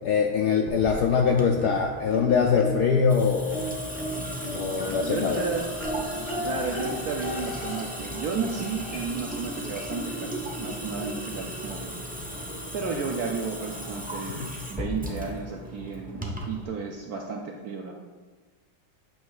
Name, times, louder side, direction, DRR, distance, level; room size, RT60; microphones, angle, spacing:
voice 1, 0.0-3.7 4.5-5.4 14.4-14.5, left 6 dB, 75° left, 2 dB, 0.9 m, -23 dB
Water tap faucet / Sink (filling or washing) / Drip, 0.7-16.6, equal, 10° right, 0.3 m, -36 dB
sound 1, 2.1-3.1 3.5-9.2 10.4-10.5 10.9-11.0, equal, 35° left, 0.5 m, -35 dB
voice 2, 5.0-5.7 6.4-11.9 12.7-17.9, right 5 dB, 70° right, 1 dB, 0.9 m, -33 dB
8.5 x 3.1 x 6.3 m, 1.3 s
omnidirectional pair, 2.3 m